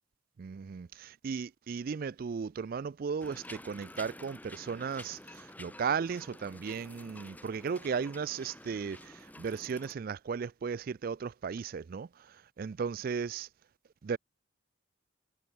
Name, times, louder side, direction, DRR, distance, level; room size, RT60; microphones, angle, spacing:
voice 1, 0.4-13.5 14.0-14.2, right 6 dB, 45° right, 0.3 m, -36 dB
sound 1, 3.2-9.9, left 1 dB, 10° left, 6.8 m, -50 dB
head